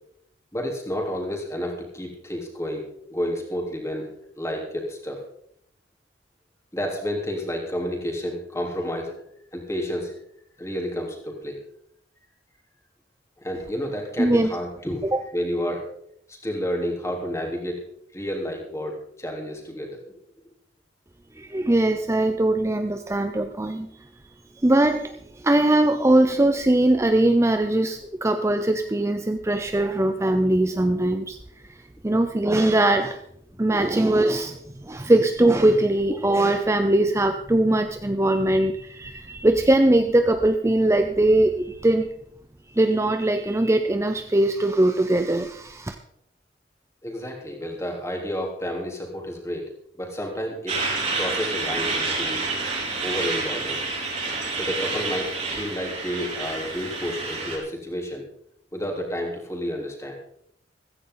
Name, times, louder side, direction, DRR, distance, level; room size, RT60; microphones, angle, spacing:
voice 1, 0.5-4.1 4.4-5.2 6.7-9.2 9.5-10.1 10.6-11.6 13.4-15.1 15.3-15.9 16.3-17.8 18.1-20.2 47.0-49.7 50.0-50.8 51.2-52.4 53.0-53.8 54.5-58.3 58.7-60.1, equal, 15° left, 0 dB, 3.5 m, -30 dB
voice 2, 14.2-14.5 15.0-15.2 21.4-23.9 24.6-31.4 31.7-33.2 33.6-42.1 42.7-46.0, right 1 dB, 15° right, 7 dB, 0.6 m, -21 dB
Truck, 50.7-57.6, right 3 dB, 40° right, 4.6 m, -28 dB
15.5 x 14.5 x 3.9 m, 0.71 s
head